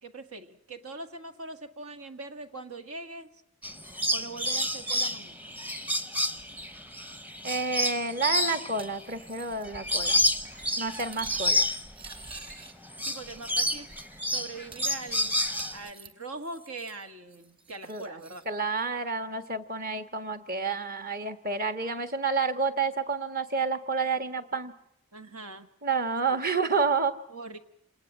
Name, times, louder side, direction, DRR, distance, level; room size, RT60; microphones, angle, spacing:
voice 1, 0.0-3.4 4.1-5.4 13.1-13.9 14.3-15.4 15.7-18.5 25.1-25.7 26.3-26.4 27.3-27.6, right 3 dB, 75° right, 9 dB, 1.8 m, -42 dB
sound 1, 3.6-12.6 12.9-15.9, left 1 dB, 10° right, 0.9 m, -29 dB
voice 2, 7.4-10.2 10.8-11.7 17.9-18.0 18.4-24.7 25.8-27.2, right 4 dB, 40° right, 11 dB, 1.6 m, -29 dB
Cutlery silverware, 8.8-9.6 9.9-10.2 10.5-12.7 13.1-13.8 14.1-14.2 14.7-17.0 17.3-18.5, right 4 dB, 25° right, 2.6 m, -50 dB
27.5 x 19.5 x 7.5 m, 0.76 s
head